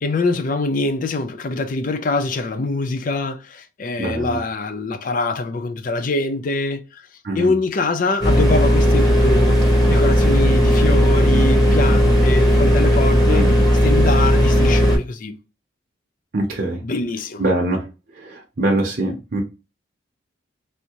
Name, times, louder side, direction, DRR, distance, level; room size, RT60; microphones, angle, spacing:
voice 1, 0.0-7.0 7.3-9.6 9.9-13.5 13.8-15.3 16.8-17.4, left 3 dB, 45° left, 0.4 m, -24 dB
voice 2, 4.0-4.4 7.2-7.5 13.3-13.6 16.3-16.8 17.4-17.9 18.2-19.4, right 2 dB, 45° right, 0.7 m, -23 dB
sound 1, 8.2-15.0, equal, 20° left, 1.1 m, -15 dB
3.5 x 2.6 x 2.9 m
head